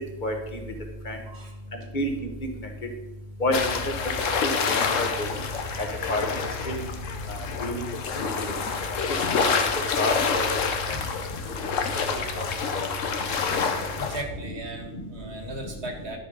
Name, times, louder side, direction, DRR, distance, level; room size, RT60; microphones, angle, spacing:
voice 1, 0.2-0.6 1.0-1.2 1.7-2.3 3.4-3.9 4.4-5.4 5.8-6.8 7.3-7.8 8.2-8.3 9.4-9.5 10.0-10.6 10.9-11.0 12.3-12.5 12.7-12.9 14.9-15.1, left 1 dB, 40° left, 4 dB, 1.4 m, -29 dB
sound 1, 3.5-14.2, left 5 dB, 85° left, 1.3 m, -27 dB
voice 2, 11.5-11.9 13.5-16.2, right 1 dB, 60° right, 3 dB, 1.9 m, -37 dB
12.0 x 5.1 x 5.2 m, 0.99 s
omnidirectional pair, 1.3 m